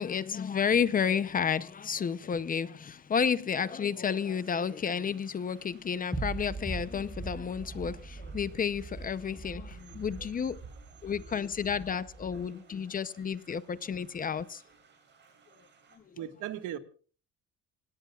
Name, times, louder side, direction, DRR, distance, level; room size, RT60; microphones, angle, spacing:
voice 1, 0.0-10.6 11.0-14.6, left 7 dB, 30° left, 0.7 m, -31 dB
sound 1, 4.1-16.0, right 5 dB, 35° right, 7.9 m, -62 dB
sound 2, 6.1-12.5, right 3 dB, 5° right, 3.7 m, -41 dB
voice 2, 9.7-10.2 16.1-16.8, right 11 dB, 75° right, 1.7 m, -39 dB
29.0 x 17.5 x 2.4 m
cardioid pair, 145°, 31 cm